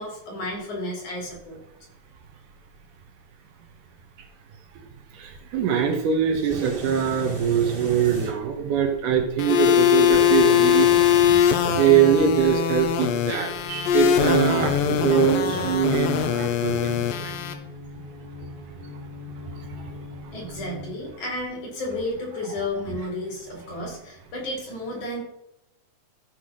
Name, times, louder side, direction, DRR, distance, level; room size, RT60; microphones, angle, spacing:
voice 1, 0.0-1.6 20.3-25.2, left 1 dB, 60° left, -2 dB, 5.7 m, -32 dB
voice 2, 5.2-11.0 11.5-17.4, right 8 dB, 70° right, 4 dB, 2.6 m, -23 dB
sound 1, 6.4-8.3 10.1-12.4 14.2-15.8, right 3 dB, 30° right, 4.0 m, -35 dB
sound 2, 9.4-17.5, left 10 dB, 80° left, 2.7 m, -21 dB
sound 3, 11.7-21.1, left 3 dB, 15° left, 0.9 m, -43 dB
14.5 x 5.8 x 6.3 m, 0.83 s
omnidirectional pair, 4.0 m